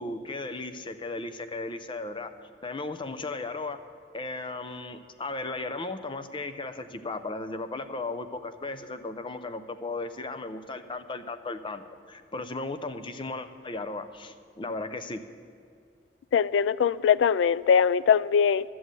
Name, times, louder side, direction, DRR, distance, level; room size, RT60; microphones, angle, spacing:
voice 1, 0.0-2.3 2.6-3.8 4.1-15.2, left 3 dB, 30° left, 0.6 m, -36 dB
voice 2, 16.3-18.6, left 7 dB, 85° left, 0.3 m, -22 dB
13.0 x 7.8 x 8.1 m
head